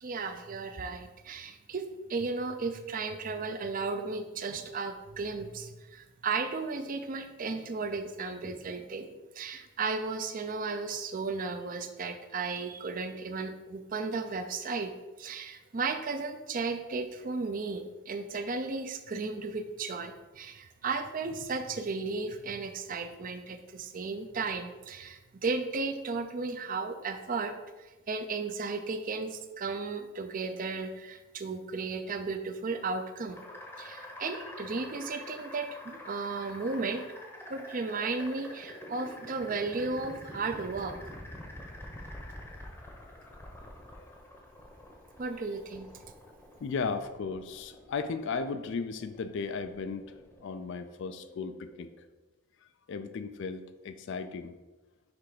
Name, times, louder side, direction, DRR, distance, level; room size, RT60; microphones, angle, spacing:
voice 1, 0.0-14.9 15.2-27.5 27.8-33.4 33.8-37.0 37.5-41.0 45.2-45.9, right 4 dB, 40° right, 8 dB, 0.4 m, -35 dB
sound 1, 33.3-52.1, left 1 dB, 10° left, 0.8 m, -47 dB
voice 2, 46.6-50.1 50.4-51.9 52.9-54.6, left 4 dB, 55° left, 10 dB, 0.3 m, -35 dB
5.9 x 3.3 x 4.9 m, 1.1 s
head